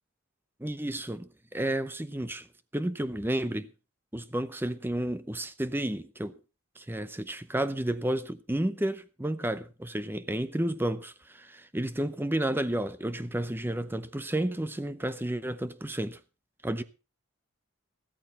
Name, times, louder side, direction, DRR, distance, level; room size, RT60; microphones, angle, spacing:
voice 1, 0.6-2.5 2.7-3.7 4.1-6.3 6.8-16.2 16.6-16.8, right 1 dB, 10° right, 0.7 m, -31 dB
14.0 x 13.5 x 4.1 m
head